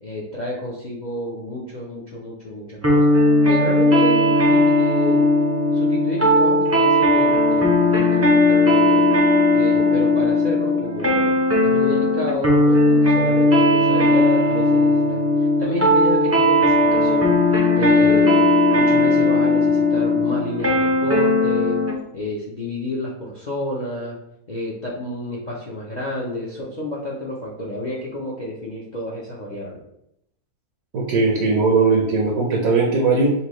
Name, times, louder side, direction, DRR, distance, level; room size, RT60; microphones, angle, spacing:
voice 1, 0.0-3.0 3.5-5.2 5.7-9.1 9.5-11.3 11.6-17.3 17.7-18.5 18.7-21.8 22.1-24.2 24.5-29.8, left 1 dB, 50° left, -4 dB, 0.5 m, -30 dB
sound 1, 2.8-22.0, left 1 dB, 25° right, 0.3 m, -17 dB
voice 2, 30.9-33.3, right 4 dB, 70° right, -2 dB, 1.1 m, -19 dB
5.4 x 2.2 x 3.1 m, 0.79 s
omnidirectional pair, 1.6 m